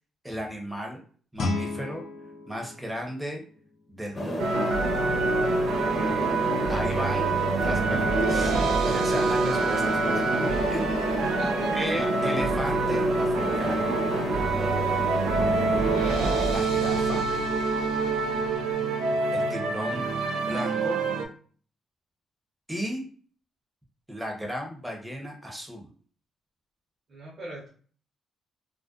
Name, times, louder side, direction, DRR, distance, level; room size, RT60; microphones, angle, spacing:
voice 1, 0.2-1.0 1.3-2.0 2.5-3.4 3.9-4.6 6.7-7.3 7.6-10.2 10.7-11.0 11.7-13.9 16.5-17.2 19.3-20.1 20.5-21.0 22.7-23.1 24.1-25.9, equal, 10° right, 1 dB, 0.7 m, -34 dB
Guitar, 1.3-4.1, left 2 dB, 65° left, 0.4 m, -34 dB
sound 1, 4.1-16.5, left 1 dB, 30° left, 0.7 m, -31 dB
sound 2, 4.4-21.3, right 3 dB, 90° right, 0.3 m, -26 dB
voice 2, 11.2-11.7 27.1-27.7, right 2 dB, 45° right, -6 dB, 0.9 m, -41 dB
2.4 x 2.1 x 2.4 m, 0.43 s
cardioid pair, 90°, 0 cm